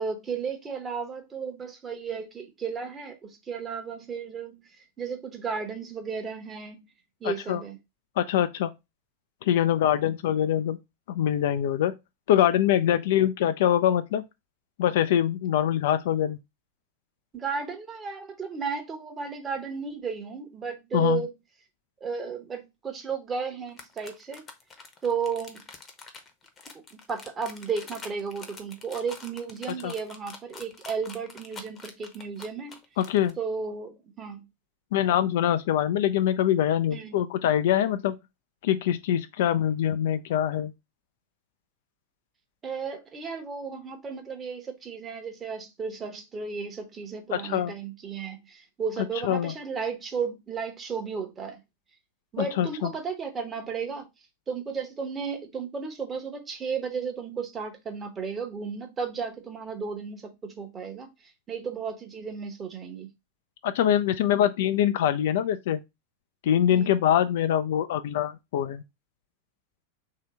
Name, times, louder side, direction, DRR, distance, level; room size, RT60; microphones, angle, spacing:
voice 1, 0.0-4.6 5.0-6.8 7.2-7.8 17.3-21.3 22.0-24.4 25.0-25.6 26.9-32.7 33.4-34.4 36.9-37.2 42.6-51.6 52.3-54.1 54.5-61.1 61.5-63.1 66.7-66.9, right 5 dB, 20° right, 0.9 m, -34 dB
voice 2, 7.2-7.6 8.2-8.7 9.4-10.8 11.1-11.9 12.3-14.2 14.8-16.4 20.9-21.2 29.8-29.9 33.0-33.3 34.9-38.2 38.6-40.7 47.3-47.7 49.2-49.5 52.4-52.9 63.6-65.8 66.4-68.8, left 10 dB, 55° left, 0.3 m, -24 dB
sound 1, 23.7-33.3, left 4 dB, 20° left, 0.8 m, -45 dB
3.2 x 2.8 x 4.5 m
figure-of-eight pair, 90°, 0 cm